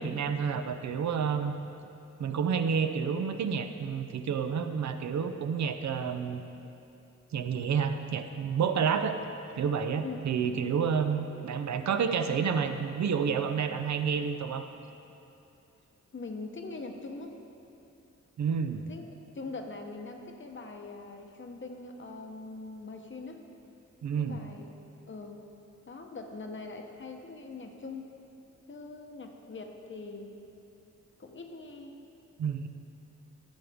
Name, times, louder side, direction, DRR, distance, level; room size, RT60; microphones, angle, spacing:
voice 1, 0.0-1.6 2.2-6.4 7.3-9.2 9.6-14.7 18.4-18.8 24.0-24.4 32.4-32.7, right 6 dB, 70° right, 7 dB, 0.6 m, -29 dB
voice 2, 16.1-17.3 18.9-19.1 19.3-23.4 24.2-24.6 25.1-25.4 25.9-28.1 28.7-30.3 31.2-31.9, left 3 dB, 40° left, 4 dB, 0.9 m, -42 dB
12.5 x 7.0 x 3.5 m, 2.8 s
wide cardioid pair, 90°, 30 cm